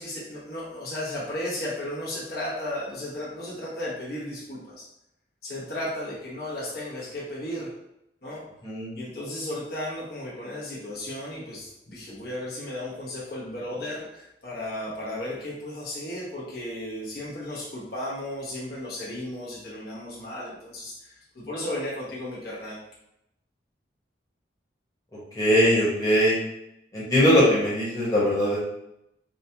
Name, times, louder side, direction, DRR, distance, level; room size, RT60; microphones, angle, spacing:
voice 1, 0.0-4.9 5.4-7.7 8.2-8.4 8.9-22.8, left 1 dB, 55° left, -7 dB, 1.2 m, -34 dB
voice 2, 25.3-26.4 26.9-28.6, equal, 20° left, -8 dB, 1.2 m, -21 dB
5.2 x 2.3 x 2.8 m, 0.83 s
head